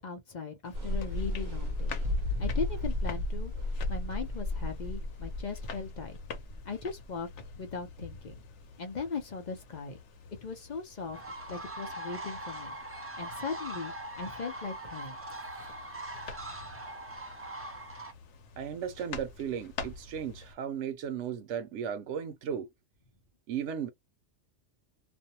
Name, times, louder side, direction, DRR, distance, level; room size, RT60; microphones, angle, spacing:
voice 1, 0.0-2.0 2.4-3.5 3.9-6.2 6.6-7.3 7.6-8.3 8.8-10.0 10.4-11.2 11.5-12.7 13.2-15.2, left 5 dB, 45° left, 0.6 m, -38 dB
sound 1, 0.6-20.5, left 4 dB, 75° left, 1.0 m, -48 dB
sound 2, 0.7-7.4, left 2 dB, 65° right, 1.0 m, -33 dB
sound 3, 11.1-18.1, right 1 dB, 15° right, 0.5 m, -41 dB
voice 2, 18.6-22.7 23.5-23.9, right 8 dB, 90° right, 0.9 m, -35 dB
2.5 x 2.1 x 2.8 m
omnidirectional pair, 1.2 m